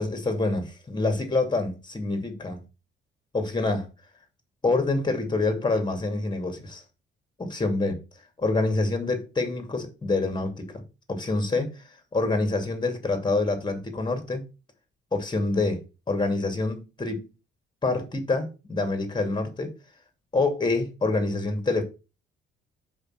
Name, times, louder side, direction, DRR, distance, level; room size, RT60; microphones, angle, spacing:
voice 1, 0.0-2.6 3.3-3.9 4.6-6.8 7.4-8.0 8.4-10.7 11.1-14.4 15.1-17.2 17.8-19.7 20.3-21.8, left 3 dB, 20° left, 2.8 m, -26 dB
5.7 x 5.1 x 6.0 m
cardioid pair, 90°, 20 cm